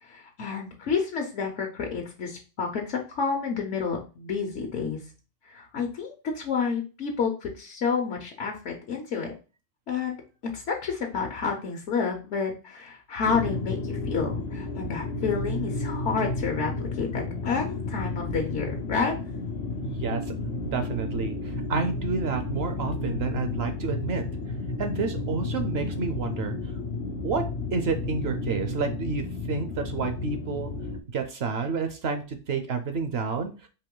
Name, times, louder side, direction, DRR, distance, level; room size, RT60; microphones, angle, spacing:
voice 1, 0.1-5.0 5.5-9.3 9.9-10.2 10.5-19.2, left 5 dB, 80° left, 2 dB, 1.1 m, -30 dB
sound 1, 13.2-31.0, left 2 dB, 60° left, 0.8 m, -32 dB
voice 2, 19.8-20.2 20.7-24.3 24.8-26.6 27.2-27.4 27.7-30.7 31.1-33.7, right 4 dB, 65° right, 7 dB, 0.8 m, -30 dB
4.6 x 2.9 x 3.7 m, 0.33 s
omnidirectional pair, 1.2 m